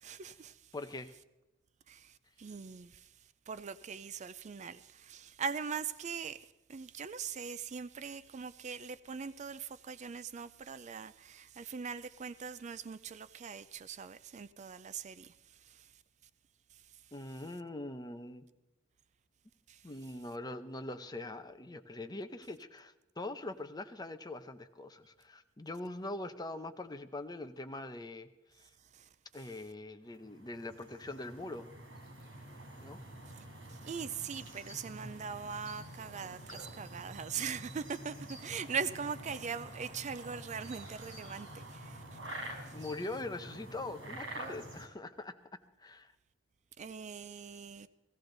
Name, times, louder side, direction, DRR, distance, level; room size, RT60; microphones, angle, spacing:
voice 1, 0.0-0.6 1.9-3.1 3.5-15.3 15.7-15.9 19.7-19.8 28.9-29.0 33.7-42.0 42.7-42.8 46.8-47.9, right 6 dB, 40° right, 0.4 m, -41 dB
voice 2, 0.7-1.1 17.1-18.5 19.8-28.3 28.6-28.7 29.3-31.7 32.8-33.0 42.7-45.4 45.8-46.1, left 2 dB, 20° left, 0.7 m, -43 dB
sound 1, 30.1-44.9, right 1 dB, 75° right, 3.9 m, -47 dB
16.5 x 16.0 x 4.0 m
head